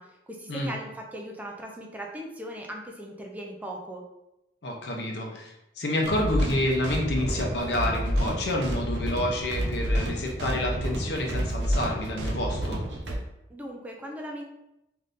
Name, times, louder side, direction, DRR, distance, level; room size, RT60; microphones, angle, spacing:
voice 1, 0.0-4.0 13.5-14.4, equal, 10° right, 0 dB, 0.3 m, -38 dB
voice 2, 4.6-12.8, left 1 dB, 75° left, 0 dB, 0.7 m, -29 dB
sound 1, 6.0-13.1, equal, 85° right, 0.7 m, -29 dB
3.5 x 2.6 x 2.5 m, 0.91 s
head